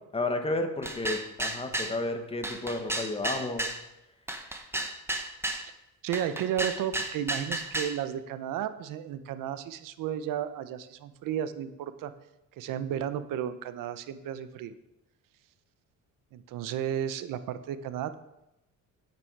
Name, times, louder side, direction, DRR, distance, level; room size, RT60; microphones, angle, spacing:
voice 1, 0.1-3.8, left 2 dB, 15° left, 6 dB, 1.4 m, -32 dB
sound 1, 0.8-2.0 2.4-3.8 4.3-5.7 6.1-8.0, right 1 dB, 5° right, 1.0 m, -33 dB
voice 2, 6.0-12.1 12.6-14.7 16.3-18.2, right 10 dB, 75° right, 13 dB, 0.9 m, -33 dB
9.3 x 9.1 x 4.7 m, 0.90 s
cardioid pair, 115°, 33 cm